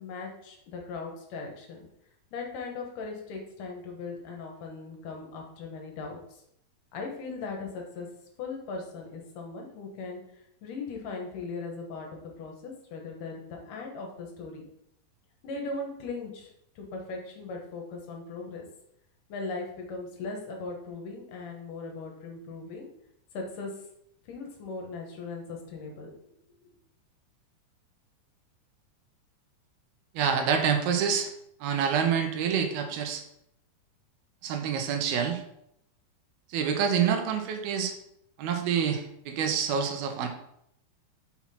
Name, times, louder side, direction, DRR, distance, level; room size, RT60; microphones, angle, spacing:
voice 1, 0.0-1.9 2.3-6.2 6.9-8.1 8.4-10.2 10.6-14.7 15.4-18.6 19.3-22.9 23.3-23.7 24.3-26.1 26.6-26.7, left 3 dB, 65° left, 1 dB, 2.4 m, -38 dB
voice 2, 30.1-31.3 31.6-33.2 34.4-35.4 36.5-37.9 38.4-40.3, right 7 dB, 75° right, 5 dB, 2.6 m, -27 dB
5.9 x 5.8 x 4.3 m, 0.75 s
omnidirectional pair, 4.6 m